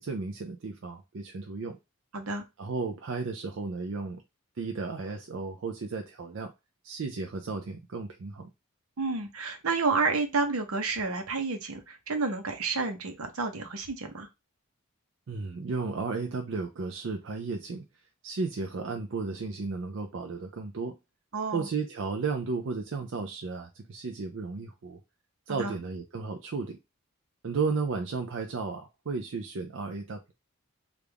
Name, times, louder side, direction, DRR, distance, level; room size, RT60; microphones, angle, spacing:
voice 1, 0.0-1.8 2.6-4.2 4.6-6.5 6.8-8.5 15.3-17.8 18.2-21.0 21.5-25.0 25.5-26.8 27.4-30.3, right 4 dB, 60° right, 0.4 m, -34 dB
voice 2, 2.1-2.4 9.0-14.3 21.3-21.7 25.5-25.8, right 4 dB, 75° right, 0.8 m, -30 dB
3.4 x 2.5 x 3.3 m
head